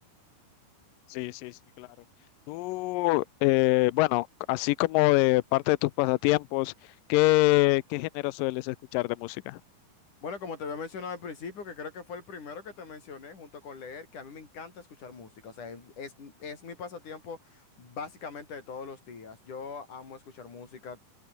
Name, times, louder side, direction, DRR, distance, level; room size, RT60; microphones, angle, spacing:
voice 1, 1.1-1.9 2.5-6.7 7.1-9.6, left 20 dB, 85° left, 2.0 m, -25 dB
voice 2, 10.2-21.0, left 5 dB, 50° left, 6.3 m, -41 dB
omnidirectional pair, 4.6 m